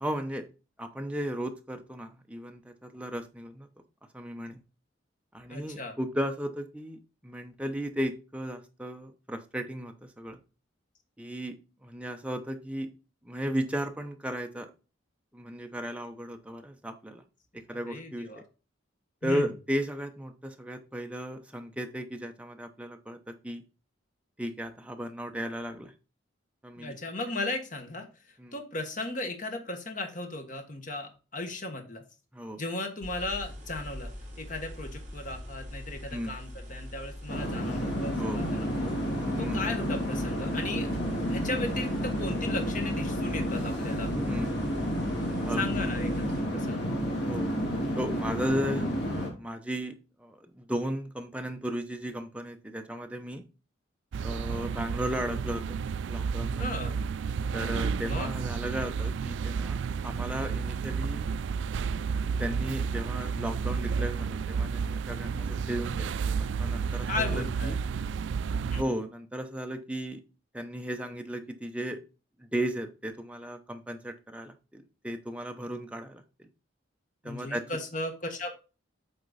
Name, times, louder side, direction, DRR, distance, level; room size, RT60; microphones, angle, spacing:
voice 1, 0.0-0.5 0.8-3.7 4.1-4.6 5.3-10.4 11.2-11.6 11.8-12.9 13.2-14.7 15.3-17.2 17.5-18.3 19.2-23.6 24.4-25.9 26.6-27.0 28.4-28.5 32.3-32.6 36.1-36.3 38.2-38.4 39.3-39.6 44.2-44.5 45.5-45.7 47.1-47.5 48.0-53.4 54.2-56.7 57.5-61.3 62.4-66.1 66.4-67.8 68.7-70.2 70.5-72.0 72.5-76.5 77.2-77.6, equal, 5° right, 5 dB, 0.8 m, -35 dB
voice 2, 5.5-6.0 17.7-18.4 19.2-19.5 26.8-32.0 32.6-34.1 34.4-38.9 39.4-40.9 41.3-44.1 45.6-46.8 56.6-57.0 58.0-58.3 67.1-67.7 68.7-68.9 77.2-78.6, left 2 dB, 40° left, 5 dB, 1.6 m, -36 dB
sound 1, 33.0-46.4, left 1 dB, 35° right, 3.5 m, -43 dB
sound 2, 37.3-49.3, equal, 55° left, 2.5 m, -30 dB
sound 3, 54.1-68.8, right 5 dB, 65° right, 0.3 m, -31 dB
8.1 x 4.4 x 4.1 m, 0.32 s
head